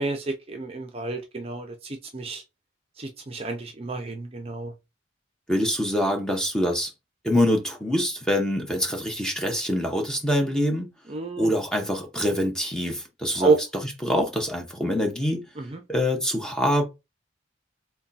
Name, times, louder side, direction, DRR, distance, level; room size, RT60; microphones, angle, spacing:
voice 1, 0.0-2.4 3.0-4.7 11.1-11.5 13.4-13.6 15.6-15.8, right 3 dB, 30° right, 0.5 m, -28 dB
voice 2, 5.5-6.9 7.2-10.9 11.4-13.5 14.0-15.4 15.9-16.8, left 1 dB, 5° left, 0.8 m, -25 dB
3.5 x 2.2 x 4.0 m
head